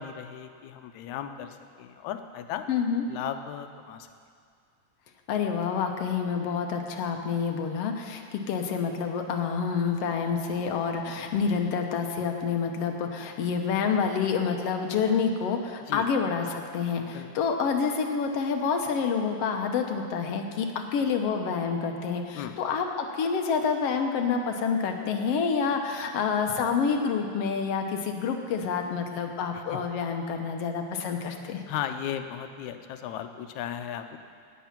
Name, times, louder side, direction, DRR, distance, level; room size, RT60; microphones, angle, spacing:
voice 1, 0.0-2.7 3.1-4.1 15.9-16.0 17.1-17.3 22.3-22.6 29.5-29.8 31.7-34.2, left 10 dB, 85° left, 8 dB, 2.1 m, -36 dB
voice 2, 2.7-3.0 5.3-20.7 20.9-31.6, left 6 dB, 65° left, 4 dB, 1.8 m, -28 dB
18.0 x 8.5 x 5.9 m, 2.2 s
omnidirectional pair, 3.4 m